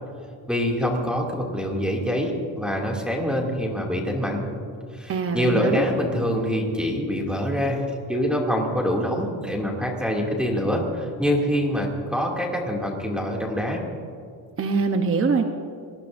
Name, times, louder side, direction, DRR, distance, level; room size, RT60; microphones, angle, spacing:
voice 1, 0.5-4.4 4.9-13.8, equal, ahead, -2 dB, 2.5 m, -25 dB
voice 2, 5.1-5.8 14.6-15.4, right 4 dB, 30° right, 5 dB, 0.8 m, -23 dB
26.0 x 19.0 x 2.6 m, 2.4 s
cardioid pair, 140°, 44 cm